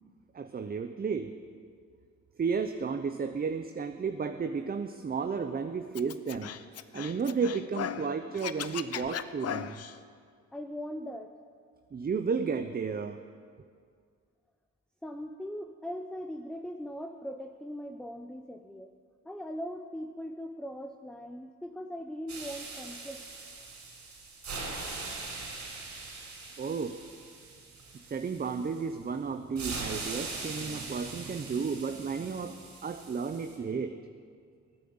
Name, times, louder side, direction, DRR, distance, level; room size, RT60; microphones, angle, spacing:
voice 1, 0.3-1.4 2.4-6.5 6.9-9.8 11.9-13.2 26.6-27.0 27.9-34.0, right 5 dB, 30° right, 7 dB, 0.7 m, -33 dB
Scratching (performance technique), 6.0-8.1 8.3-9.9, left 9 dB, 55° left, 0.7 m, -37 dB
voice 2, 10.5-11.3 15.0-18.9 19.2-23.2, equal, 5° left, 5 dB, 0.7 m, -40 dB
sound 1, 22.3-28.9 29.6-33.6, right 3 dB, 65° right, 4.4 m, -41 dB
16.0 x 9.2 x 7.9 m, 2.1 s
cardioid pair, 90°, 30 cm